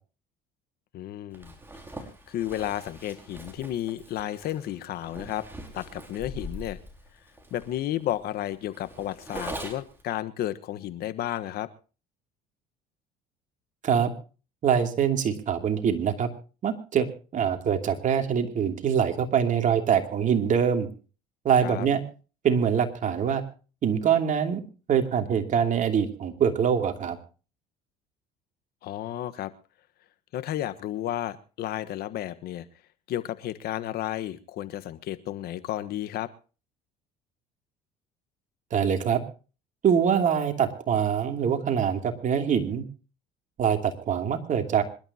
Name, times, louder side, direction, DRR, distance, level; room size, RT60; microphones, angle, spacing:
voice 1, 0.9-1.5 2.3-5.5 5.7-6.8 7.5-11.7 21.6-21.9 28.8-29.5 30.3-32.6 33.1-36.3, left 12 dB, 65° left, 13 dB, 1.3 m, -32 dB
Zipper (clothing), 1.3-10.0, right 1 dB, 10° right, 5.1 m, -42 dB
voice 2, 14.6-16.3 16.6-17.1 17.3-20.9 21.4-22.0 22.4-23.4 23.8-24.6 24.9-27.2 38.7-39.2 39.8-42.8 43.6-44.8, right 8 dB, 45° right, 5 dB, 2.8 m, -24 dB
26.0 x 12.0 x 2.9 m, 0.36 s
supercardioid pair, 90°, 18 cm